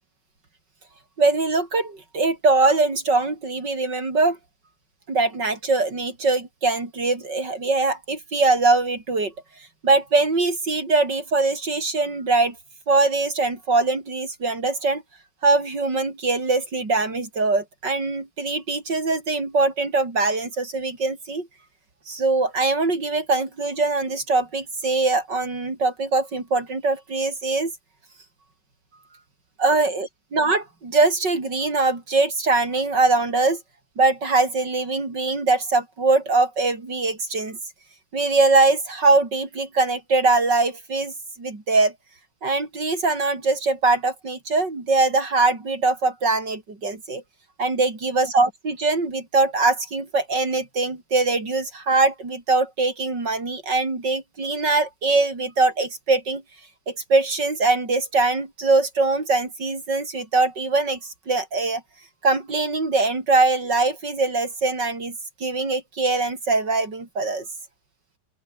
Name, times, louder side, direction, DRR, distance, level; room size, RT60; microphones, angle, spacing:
voice 1, 1.2-4.4 5.1-9.3 9.8-12.6 12.9-15.0 15.4-21.5 22.1-27.7 29.6-33.6 34.0-37.6 38.1-41.9 42.4-47.2 47.6-56.4 56.9-61.8 62.2-65.2 65.4-67.5, right 3 dB, 75° right, 5.5 m, -22 dB
open air
omnidirectional pair, 1.9 m